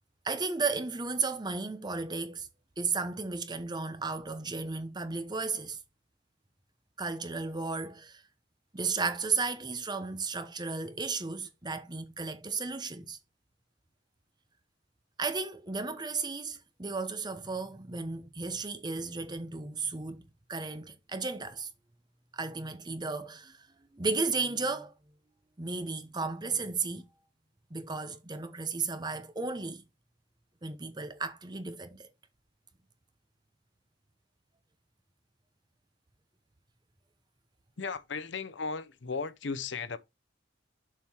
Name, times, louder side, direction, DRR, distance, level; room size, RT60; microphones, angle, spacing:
voice 1, 0.2-2.5 2.8-5.8 7.0-8.2 8.7-13.2 15.2-21.7 22.3-24.9 25.6-27.1 27.7-29.8 30.6-32.1, right 4 dB, 25° right, 0.9 m, -34 dB
voice 2, 37.8-40.0, left 4 dB, 70° left, 0.7 m, -36 dB
7.2 x 4.4 x 4.5 m
head